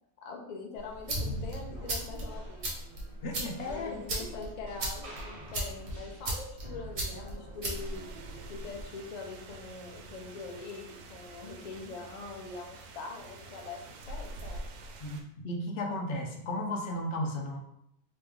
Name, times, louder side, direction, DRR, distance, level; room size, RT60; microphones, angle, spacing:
voice 1, 0.2-2.7 3.6-8.1 8.5-10.8 11.1-14.7, left 4 dB, 80° left, 1 dB, 0.3 m, -43 dB
sound 1, 0.8-8.8, right 1 dB, 50° right, 1.1 m, -37 dB
voice 2, 3.2-4.0 15.0-15.2 15.4-17.6, left 1 dB, 60° left, 1 dB, 0.8 m, -34 dB
sound 2, 7.7-15.2, right 2 dB, 85° right, 1.1 m, -47 dB
3.1 x 3.0 x 3.4 m, 0.76 s
omnidirectional pair, 1.5 m